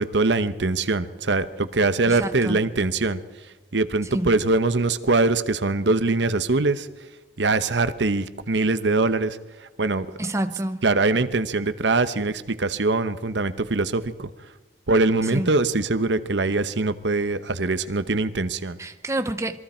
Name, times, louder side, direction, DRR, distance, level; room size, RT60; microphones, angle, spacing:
voice 1, 0.0-3.2 3.7-6.9 7.4-9.4 9.8-10.1 10.8-14.3 14.9-18.8, right 3 dB, 75° right, 12 dB, 1.0 m, -22 dB
voice 2, 2.0-2.6 4.0-4.4 10.2-10.8 15.2-15.5 18.8-19.6, right 1 dB, 15° right, 9 dB, 0.8 m, -28 dB
27.0 x 22.5 x 4.4 m, 1.1 s
head